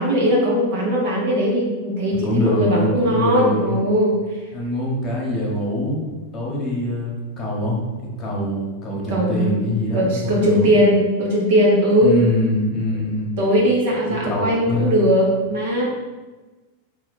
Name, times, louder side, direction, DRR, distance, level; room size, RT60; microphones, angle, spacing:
voice 1, 0.0-4.1 9.1-12.1 13.4-15.9, equal, 50° right, -2 dB, 1.2 m, -19 dB
voice 2, 2.2-3.8 4.5-6.0 6.3-10.8 12.0-13.3 14.1-15.0, left 1 dB, 25° left, -3 dB, 1.3 m, -24 dB
4.1 x 2.7 x 4.2 m, 1.2 s
figure-of-eight pair, 90°, 0 cm